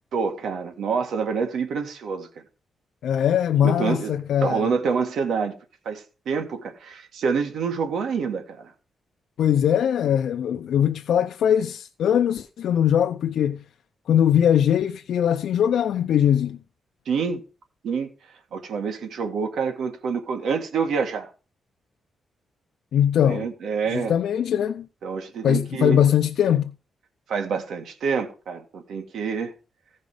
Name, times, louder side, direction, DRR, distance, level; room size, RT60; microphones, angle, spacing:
voice 1, 0.1-2.3 3.6-4.1 4.4-5.5 5.9-8.7 17.1-17.4 17.8-18.1 18.5-21.3 23.2-24.1 25.0-26.0 27.3-29.5, right 5 dB, 75° right, 1.8 m, -27 dB
voice 2, 3.0-4.7 9.4-13.6 14.1-16.6 22.9-23.5 23.9-24.9 25.4-26.7, left 9 dB, 80° left, 0.5 m, -21 dB
15.5 x 5.3 x 4.9 m
wide cardioid pair, 140°, 0 cm